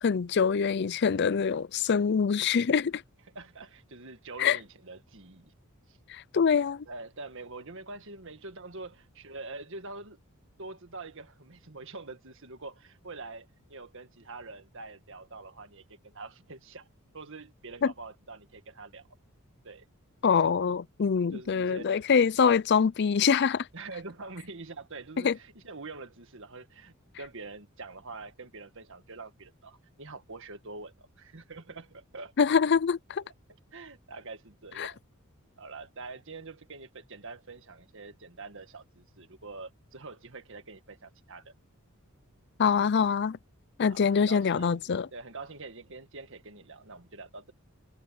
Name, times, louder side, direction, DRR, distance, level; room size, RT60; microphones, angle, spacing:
voice 1, 0.0-3.0 4.4-4.6 6.1-6.9 17.8-17.9 20.2-23.7 25.2-25.3 32.4-33.2 34.8-34.9 42.6-43.4 43.8-45.1, left 6 dB, 50° left, 0.4 m, -24 dB
voice 2, 3.4-5.5 5.9-6.0 6.9-10.2 10.6-16.9 17.1-19.1 19.6-19.9 20.7-20.8 21.3-22.3 23.7-32.3 33.7-35.0 35.6-41.5 43.9-47.5, right 3 dB, 60° right, 1.8 m, -45 dB
head